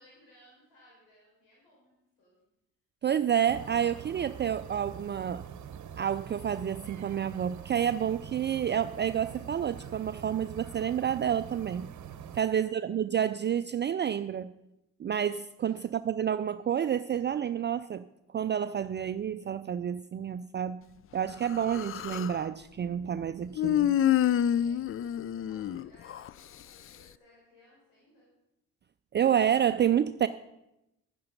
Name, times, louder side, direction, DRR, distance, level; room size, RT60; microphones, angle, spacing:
voice 1, 0.0-2.4 12.3-12.8 15.6-15.8 24.4-28.3, left 1 dB, 80° left, -4 dB, 4.3 m, -61 dB
voice 2, 3.0-5.4 6.0-11.9 12.3-14.5 15.0-18.0 18.3-20.8 21.1-24.0 29.1-30.3, right 9 dB, 30° right, 12 dB, 0.4 m, -29 dB
sound 1, 3.5-12.4, right 9 dB, 50° right, 1.0 m, -44 dB
Human voice, 21.4-22.4 23.6-26.3, left 11 dB, 40° left, 0.4 m, -27 dB
11.0 x 9.5 x 5.2 m, 0.89 s
supercardioid pair, 60°, 36 cm